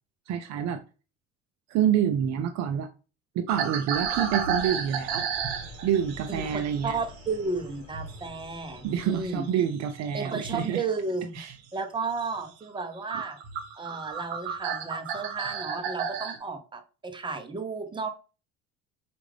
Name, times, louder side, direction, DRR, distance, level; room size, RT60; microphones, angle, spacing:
voice 1, 0.3-0.8 1.7-2.9 3.3-5.3 5.8-7.0 8.8-10.8 11.3-11.5, right 9 dB, 55° right, 0.5 m, -27 dB
sound 1, 3.5-8.3 8.5-10.7 11.2-11.6 12.0-12.2 12.8-12.9 13.1-16.4, right 7 dB, 80° right, 0.9 m, -33 dB
sound 2, 3.9-9.5, left 4 dB, 45° left, 1.2 m, -47 dB
voice 2, 6.3-9.5 10.1-11.4 11.7-13.4 13.8-18.1, right 4 dB, 15° right, 0.8 m, -33 dB
4.6 x 2.5 x 3.3 m
supercardioid pair, 85°, 33 cm